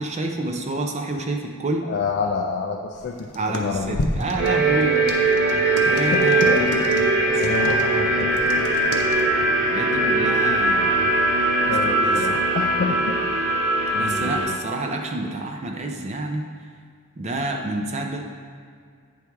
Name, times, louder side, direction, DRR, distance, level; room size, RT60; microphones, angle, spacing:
voice 1, 0.0-1.9 3.3-5.0 5.9-6.7 7.3-7.8 9.7-11.1 11.6-12.4 14.0-16.4 17.2-18.2, right 2 dB, 30° right, 2 dB, 0.5 m, -28 dB
voice 2, 1.8-4.0 5.9-6.7 7.4-9.1 11.7-13.2 13.9-14.6, left 4 dB, 50° left, 1 dB, 0.3 m, -28 dB
sound 1, 2.9-9.2, left 1 dB, 85° left, 0.7 m, -33 dB
sound 2, 4.4-14.5, right 2 dB, 60° right, 1.1 m, -20 dB
8.4 x 4.6 x 3.5 m, 2.1 s
head